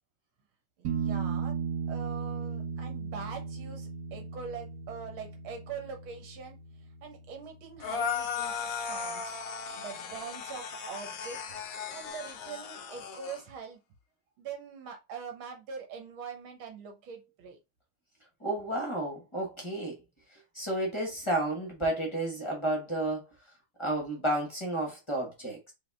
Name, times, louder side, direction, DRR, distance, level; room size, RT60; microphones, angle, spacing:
sound 1, 0.8-8.5 11.5-11.6, right 6 dB, 55° right, 1.4 m, -37 dB
voice 1, 0.8-1.6 1.9-6.6 7.0-9.4 9.8-11.4 11.9-13.8 14.4-17.6, right 6 dB, 80° right, 1.9 m, -43 dB
sound 2, 7.8-13.4, left 6 dB, 80° left, 0.7 m, -36 dB
voice 2, 18.4-20.0 20.3-23.2 23.8-25.7, right 1 dB, 25° left, 0.7 m, -31 dB
4.9 x 2.7 x 3.5 m
omnidirectional pair, 2.3 m